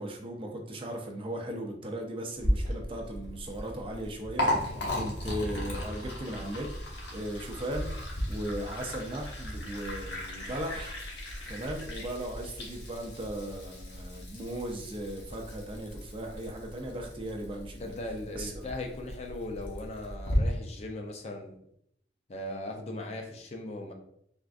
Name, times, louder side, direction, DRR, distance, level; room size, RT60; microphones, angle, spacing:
voice 1, 0.0-6.7 7.1-8.0 8.3-11.0 11.5-18.0 18.3-18.6, right 1 dB, 30° right, 2 dB, 0.4 m, -37 dB
Liquid, 2.4-20.4, left 1 dB, 75° left, 0.9 m, -36 dB
voice 2, 17.8-21.5 22.3-23.9, left 2 dB, 35° left, 3 dB, 0.4 m, -38 dB
3.4 x 2.4 x 2.4 m, 0.71 s
head